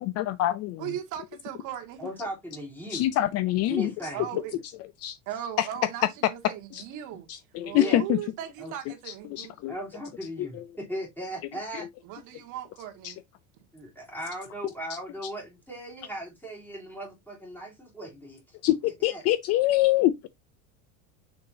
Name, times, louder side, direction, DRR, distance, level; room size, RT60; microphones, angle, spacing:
voice 1, 0.0-0.9 2.9-3.9 5.0-5.2 5.6-5.7 6.7-6.8 7.3-8.2 9.1-9.7 10.4-10.6 13.0-13.1 18.6-20.3, left 14 dB, 40° left, 0.5 m, -25 dB
voice 2, 0.8-2.0 4.1-4.5 5.3-7.3 7.6-9.6 12.0-13.2, right 11 dB, 50° right, 1.8 m, -38 dB
voice 3, 2.0-3.1 3.7-4.3 7.7-8.0 8.6-8.7 9.7-11.9 13.7-18.6 19.1-19.2, equal, 5° left, 3.3 m, -37 dB
6.7 x 5.9 x 2.7 m
supercardioid pair, 140°, 40 cm